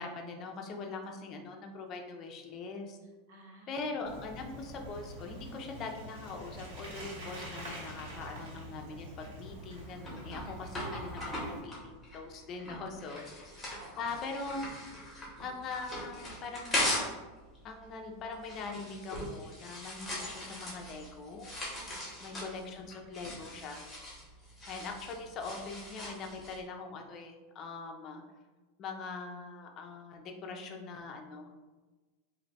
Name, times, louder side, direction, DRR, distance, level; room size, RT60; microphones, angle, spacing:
voice 1, 0.0-3.0 3.7-13.5 14.0-14.7 15.4-17.1 17.6-21.5 22.2-23.9 24.7-28.2 28.8-31.7, left 4 dB, 25° left, 3 dB, 0.3 m, -42 dB
voice 2, 3.3-3.7 10.4-11.0 13.2-14.0 21.9-22.2, right 2 dB, 55° right, 0 dB, 0.7 m, -56 dB
Bicycle, 4.0-11.6, equal, 85° right, 1.5 m, -46 dB
sound 1, 9.5-17.2 17.5-26.6, left 1 dB, 5° left, 0.7 m, -39 dB
2.5 x 2.2 x 4.0 m, 1.2 s
supercardioid pair, 175°, 0 cm